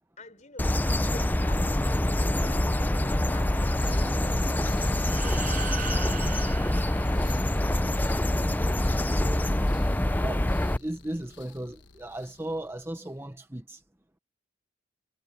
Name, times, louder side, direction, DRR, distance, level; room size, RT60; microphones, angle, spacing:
voice 1, 0.2-1.8 2.4-6.4, left 2 dB, 35° left, 5.0 m, -50 dB
sound 1, 0.6-10.8, left 1 dB, 10° left, 0.5 m, -25 dB
sound 2, 3.2-13.2, left 4 dB, 60° left, 1.2 m, -49 dB
sound 3, 5.0-7.9, right 9 dB, 40° right, 0.7 m, -40 dB
voice 2, 9.0-9.8 10.2-13.8, right 1 dB, 10° right, 0.8 m, -37 dB
head